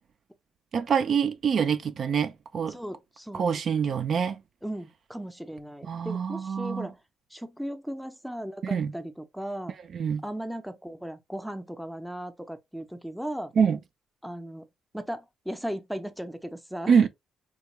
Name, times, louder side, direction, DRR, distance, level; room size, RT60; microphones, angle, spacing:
voice 1, 0.7-2.8 3.3-4.4 5.9-6.9 8.6-8.9 9.9-10.2 13.6-13.8 16.9-17.1, right 6 dB, 55° right, 0.4 m, -25 dB
voice 2, 2.7-3.6 4.6-7.0 7.3-9.7 10.2-13.5 14.2-14.7 14.9-17.1, equal, ahead, 0.5 m, -37 dB
3.5 x 2.3 x 2.9 m
cardioid pair, 90°, 0 cm